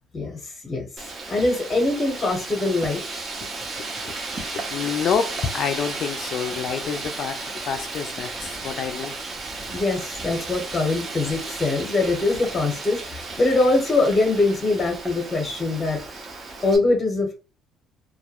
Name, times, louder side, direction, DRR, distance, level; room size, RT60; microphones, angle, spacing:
voice 1, 0.1-0.9 1.3-3.2 9.7-16.0 16.6-17.3, left 2 dB, 25° left, 0.8 m, -23 dB
Wind, 1.0-16.8, right 3 dB, 35° right, 0.7 m, -34 dB
voice 2, 3.8-4.2 4.5-9.2, left 7 dB, 55° left, 0.3 m, -28 dB
2.2 x 2.0 x 2.8 m
cardioid pair, 100°, 0 cm